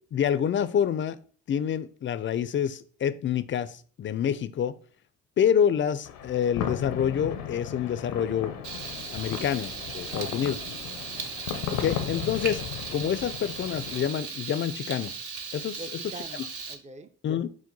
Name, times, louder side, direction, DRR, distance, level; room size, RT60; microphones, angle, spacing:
voice 1, 0.1-1.2 1.5-4.7 5.4-8.5 9.1-10.5 11.7-12.6 12.9-15.1 15.5-15.8 17.2-17.5, left 8 dB, 35° left, 0.4 m, -27 dB
sound 1, 6.0-14.1, left 9 dB, 85° left, 0.6 m, -36 dB
Frying (food), 8.6-16.8, right 5 dB, 65° right, 0.8 m, -37 dB
voice 2, 10.1-10.4 11.1-11.4 15.8-17.1, right 3 dB, 20° right, 0.5 m, -44 dB
4.5 x 2.2 x 3.9 m
supercardioid pair, 60°, 33 cm